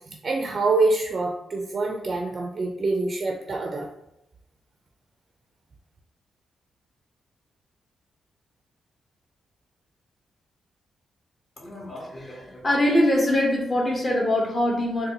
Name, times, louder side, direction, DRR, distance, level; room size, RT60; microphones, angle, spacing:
voice 1, 0.1-3.9, right 3 dB, 45° right, 2 dB, 0.4 m, -25 dB
voice 2, 11.6-15.1, left 1 dB, 35° left, -1 dB, 0.6 m, -23 dB
3.8 x 2.2 x 2.7 m, 0.84 s
cardioid pair, 90°, 0 cm